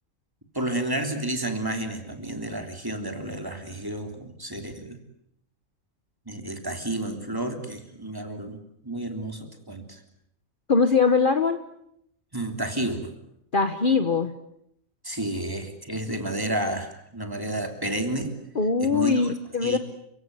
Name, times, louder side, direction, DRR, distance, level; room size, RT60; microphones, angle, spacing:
voice 1, 0.5-5.0 6.3-10.0 12.3-13.1 15.0-18.4 18.8-19.3 19.6-19.8, right 1 dB, 15° right, 5 dB, 3.2 m, -31 dB
voice 2, 10.7-11.6 13.5-14.3 18.5-19.8, left 4 dB, 40° left, 9 dB, 1.3 m, -22 dB
30.0 x 17.0 x 9.5 m, 0.75 s
omnidirectional pair, 1.4 m